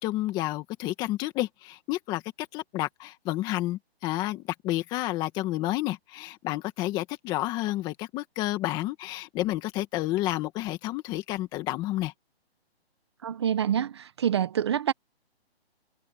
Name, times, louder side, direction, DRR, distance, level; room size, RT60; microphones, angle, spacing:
voice 1, 0.0-12.1, left 16 dB, 15° left, 1.9 m, -30 dB
voice 2, 13.2-14.9, right 9 dB, 25° right, 0.9 m, -26 dB
hypercardioid pair, 170°, 32 cm